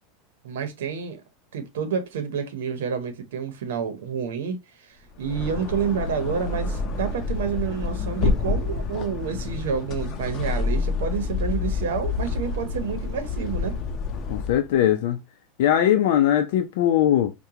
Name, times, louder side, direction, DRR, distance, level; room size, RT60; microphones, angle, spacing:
voice 1, 0.4-1.2 1.5-13.8, right 6 dB, 85° right, 0.8 m, -29 dB
sound 1, 5.1-14.7, left 4 dB, 40° left, 0.7 m, -28 dB
voice 2, 14.3-15.2 15.6-17.3, left 11 dB, 75° left, 0.5 m, -20 dB
4.7 x 2.2 x 2.8 m
supercardioid pair, 130°, 0 cm